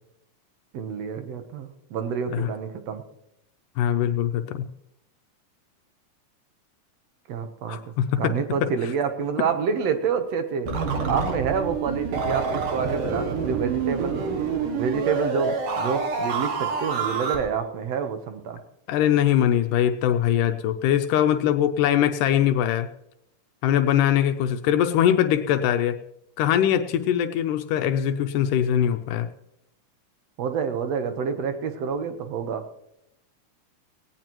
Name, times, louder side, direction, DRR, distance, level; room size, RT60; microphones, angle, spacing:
voice 1, 0.7-3.0 7.3-7.8 8.2-10.7 11.1-14.2 14.8-18.6 30.4-32.7, right 6 dB, 65° right, 8 dB, 1.9 m, -28 dB
voice 2, 3.8-4.6 7.7-8.4 18.9-22.9 23.6-26.0 26.4-29.3, left 10 dB, 85° left, 7 dB, 2.3 m, -22 dB
sound 1, 10.7-17.4, right 5 dB, 80° right, 3.5 m, -27 dB
17.5 x 17.0 x 3.0 m, 0.79 s
omnidirectional pair, 3.7 m